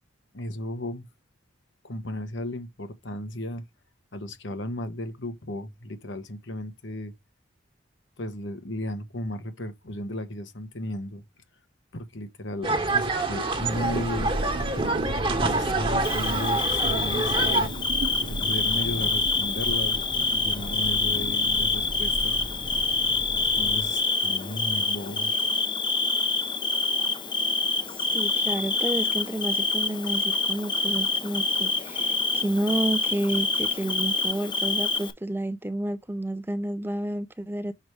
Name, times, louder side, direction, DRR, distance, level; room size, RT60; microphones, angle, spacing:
voice 1, 0.3-1.1 1.8-3.6 4.1-7.1 8.2-11.2 11.9-14.3 15.4-17.7 18.2-22.4 23.5-25.5, left 1 dB, 75° left, 1.3 m, -35 dB
sound 1, 12.6-17.7, right 3 dB, 25° right, 1.2 m, -26 dB
Thunder, 13.2-24.3, right 2 dB, 90° right, 0.8 m, -35 dB
Bird / Cricket, 16.0-35.1, left 3 dB, 25° left, 0.7 m, -26 dB
voice 2, 27.9-37.7, right 1 dB, 10° right, 0.5 m, -30 dB
6.4 x 4.7 x 3.3 m
head